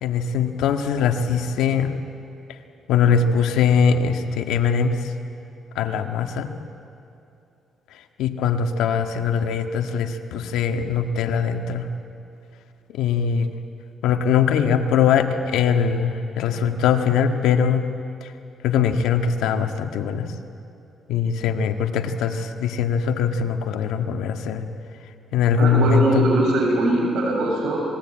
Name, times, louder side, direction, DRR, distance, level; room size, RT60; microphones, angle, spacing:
voice 1, 0.0-1.9 2.9-5.0 5.8-6.5 8.2-11.9 12.9-13.5 14.0-17.9 18.6-20.3 21.1-24.6 25.3-26.3, left 7 dB, 90° left, 5 dB, 1.7 m, -21 dB
voice 2, 25.6-27.8, right 2 dB, 80° right, 0 dB, 7.1 m, -21 dB
27.0 x 20.5 x 9.0 m, 2.7 s
cardioid pair, 90°, 0 cm